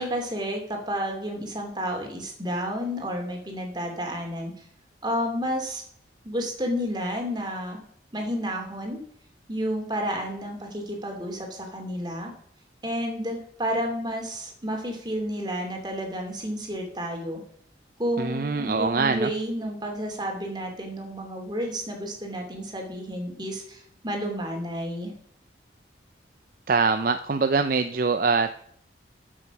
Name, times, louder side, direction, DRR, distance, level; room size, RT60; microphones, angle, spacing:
voice 1, 0.0-4.5 5.0-5.8 6.2-7.8 8.1-9.0 9.5-12.3 12.8-17.4 18.0-25.1, equal, 25° right, 2 dB, 2.7 m, -31 dB
voice 2, 18.2-19.3 26.7-28.6, right 4 dB, 50° right, 9 dB, 0.5 m, -23 dB
14.0 x 6.3 x 5.9 m, 0.66 s
head